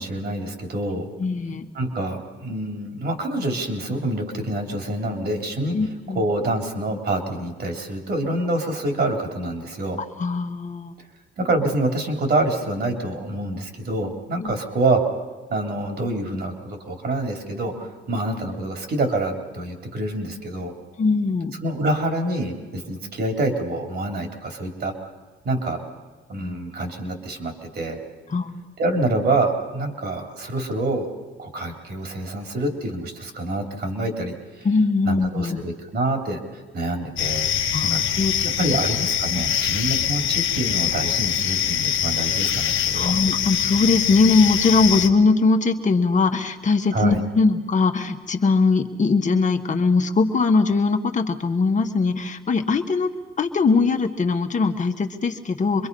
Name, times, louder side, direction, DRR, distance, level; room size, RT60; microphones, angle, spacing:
voice 1, 0.0-1.0 1.7-5.8 6.1-10.0 11.4-15.0 15.5-20.7 21.6-25.1 25.4-25.8 26.3-28.0 28.8-31.1 31.4-34.7 35.0-37.5 37.8-38.0 38.6-43.2 46.9-47.2, right 2 dB, 55° right, 3 dB, 3.5 m, -26 dB
voice 2, 1.2-1.7 5.7-6.2 10.2-10.9 14.4-14.5 21.0-21.6 28.3-28.6 34.6-35.6 37.7-38.8 39.3-39.4 42.9-53.1 53.4-55.9, left 4 dB, 40° left, 5 dB, 1.7 m, -21 dB
sound 1, 37.2-45.1, left 9 dB, 75° left, 1.3 m, -23 dB
26.0 x 22.0 x 5.5 m, 1.3 s
cardioid pair, 90°, 20 cm